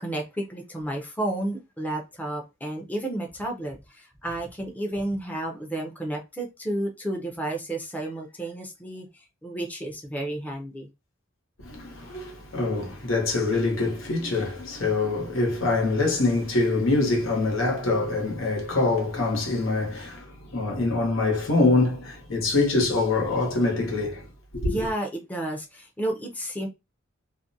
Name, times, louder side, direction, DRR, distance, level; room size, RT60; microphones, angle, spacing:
voice 1, 0.0-10.9 24.6-26.7, right 1 dB, 10° left, 0.5 m, -32 dB
voice 2, 11.6-24.8, left 3 dB, 90° left, 1.0 m, -25 dB
2.5 x 2.1 x 2.6 m
head